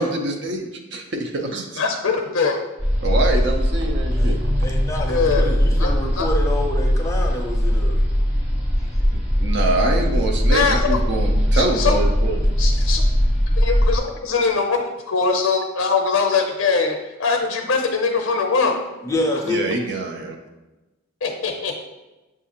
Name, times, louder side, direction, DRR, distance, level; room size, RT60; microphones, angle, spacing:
voice 1, 0.0-1.8 3.0-4.4 9.1-12.4 19.4-20.4, right 2 dB, 55° right, 4 dB, 0.5 m, -25 dB
voice 2, 1.8-2.6 5.1-5.9 6.2-6.3 10.5-11.0 11.5-12.0 12.6-13.0 13.6-18.8 21.2-21.8, left 4 dB, 80° left, 3 dB, 0.5 m, -22 dB
sound 1, 2.8-14.0, equal, 85° right, 1.3 m, -20 dB
voice 3, 4.2-8.0 19.0-19.6, left 1 dB, 15° left, 0 dB, 0.5 m, -27 dB
6.3 x 2.5 x 2.8 m, 1.1 s
head